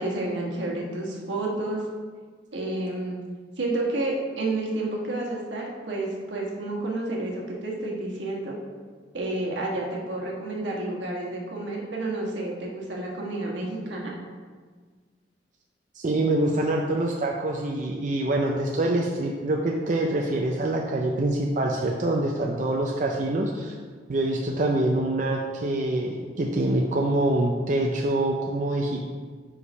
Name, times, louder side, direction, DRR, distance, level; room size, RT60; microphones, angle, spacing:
voice 1, 0.0-1.8 2.5-3.2 3.6-8.5 9.1-14.1, right 2 dB, 80° right, -2 dB, 1.4 m, -30 dB
voice 2, 15.9-23.8 24.1-29.0, right 1 dB, 40° right, 0 dB, 0.5 m, -25 dB
5.0 x 4.9 x 5.4 m, 1.5 s
head